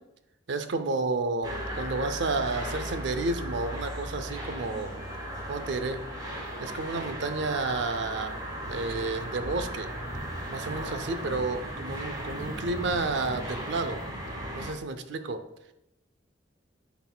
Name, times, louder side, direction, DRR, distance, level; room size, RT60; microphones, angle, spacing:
voice 1, 0.5-4.9 5.5-6.0 6.6-8.3 8.7-9.9 10.5-14.0 14.5-15.4, right 3 dB, 65° right, 9 dB, 0.5 m, -31 dB
sound 1, 1.4-14.7, right 1 dB, 20° right, 1.0 m, -36 dB
sound 2, 2.2-10.6, left 1 dB, 30° left, 1.0 m, -48 dB
10.5 x 4.0 x 2.2 m, 0.85 s
head